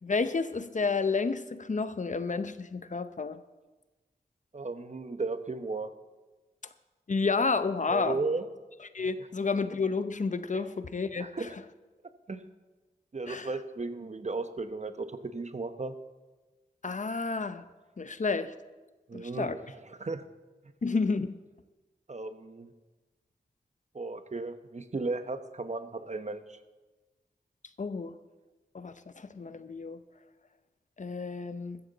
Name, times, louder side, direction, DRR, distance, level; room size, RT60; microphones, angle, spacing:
voice 1, 0.0-3.4 7.1-8.2 8.9-11.5 13.3-13.5 16.8-17.6 18.0-18.5 19.1-19.6 20.8-21.4 27.8-28.1 28.7-30.0 31.0-31.8, left 4 dB, 45° left, 11 dB, 0.7 m, -30 dB
voice 2, 4.5-5.9 7.9-8.4 10.5-10.6 11.2-11.5 12.3-12.4 13.1-16.0 19.1-20.3 22.1-22.7 23.9-26.6, right 3 dB, 40° right, 10 dB, 1.0 m, -35 dB
14.5 x 14.0 x 4.0 m, 1.2 s
wide cardioid pair, 60°, 17 cm